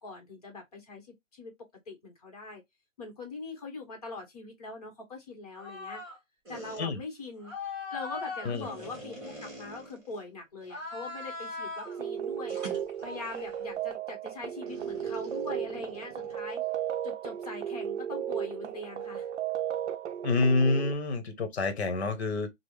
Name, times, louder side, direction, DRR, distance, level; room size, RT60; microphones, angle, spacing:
voice 1, 0.0-1.5 1.9-2.6 3.0-6.0 6.5-7.5 7.9-9.1 9.4-12.6 13.0-16.6 17.0-19.3, left 3 dB, 30° left, 0.9 m, -42 dB
sound 1, 5.6-6.2 6.5-6.8 7.4-10.2 10.6-12.0 12.5-13.6 14.7-16.5, left 2 dB, 10° right, 1.0 m, -41 dB
sound 2, 11.8-20.9, right 10 dB, 60° right, 0.5 m, -35 dB
voice 2, 20.2-22.5, left 3 dB, 55° left, 0.9 m, -27 dB
3.4 x 2.0 x 3.1 m
hypercardioid pair, 175°, 39 cm